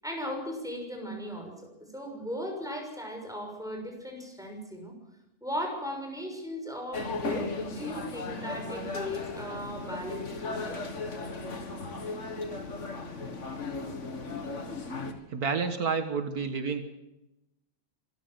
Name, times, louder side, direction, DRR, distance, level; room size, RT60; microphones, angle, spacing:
voice 1, 0.0-4.9 5.4-10.8, equal, ahead, 2 dB, 6.4 m, -37 dB
sound 1, 6.9-15.1, left 3 dB, 50° left, 2.3 m, -36 dB
voice 2, 15.3-16.8, right 5 dB, 75° right, 8 dB, 2.0 m, -29 dB
26.0 x 14.5 x 7.7 m, 0.90 s
omnidirectional pair, 1.6 m